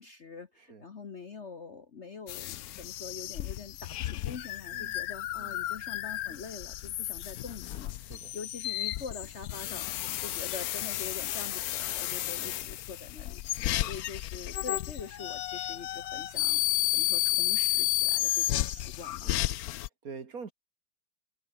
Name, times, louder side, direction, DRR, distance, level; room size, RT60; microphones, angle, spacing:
voice 1, 0.0-13.4 13.9-16.6 16.9-19.4, left 5 dB, 40° left, 1.2 m, -44 dB
sound 1, 2.3-19.9, left 14 dB, 70° left, 0.9 m, -32 dB
voice 2, 8.0-8.4 12.4-12.5 13.7-13.9 18.5-18.7 19.2-19.5 19.8-20.5, right 5 dB, 50° right, 2.2 m, -46 dB
omnidirectional pair, 2.1 m